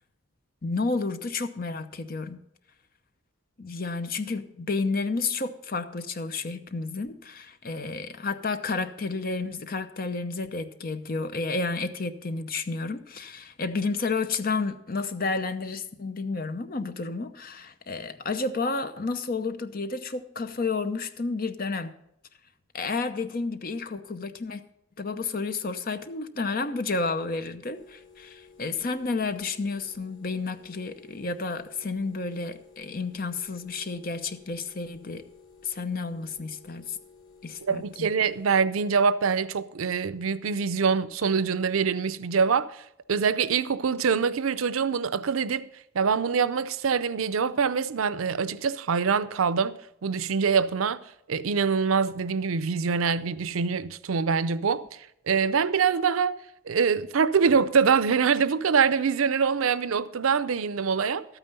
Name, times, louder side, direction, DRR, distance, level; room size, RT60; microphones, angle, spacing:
voice 1, 0.6-2.4 3.6-21.9 22.7-24.6 25.0-35.3 35.6-37.0 37.4-38.1, left 3 dB, 45° left, 0.7 m, -31 dB
sound 1, 27.7-38.5, left 5 dB, 80° left, 1.9 m, -54 dB
voice 2, 37.6-42.8 43.1-45.7 45.9-51.0 51.3-54.8 55.3-56.4 56.7-61.2, right 6 dB, 85° right, 0.5 m, -24 dB
12.5 x 9.0 x 5.4 m
head